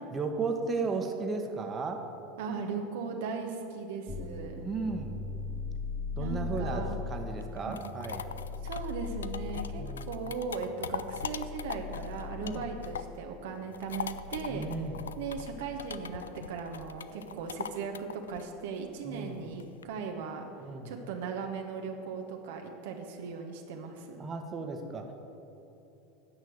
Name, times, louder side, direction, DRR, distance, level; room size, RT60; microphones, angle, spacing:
voice 1, 0.1-2.0 4.6-5.2 6.2-8.2 9.8-10.1 12.4-12.7 14.5-15.0 19.0-19.5 20.6-20.9 24.2-25.1, right 4 dB, 30° right, 4 dB, 1.3 m, -35 dB
voice 2, 2.4-4.7 6.2-7.0 7.7-7.8 8.6-14.7 15.2-20.4 20.8-24.2, right 5 dB, 70° right, 3 dB, 1.1 m, -38 dB
sound 1, 4.1-16.8, left 4 dB, 15° left, 0.8 m, -40 dB
sound 2, 7.4-13.2 13.5-19.8, left 7 dB, 90° left, 0.4 m, -41 dB
9.8 x 6.2 x 8.7 m, 3.0 s
hypercardioid pair, 90°, 0 cm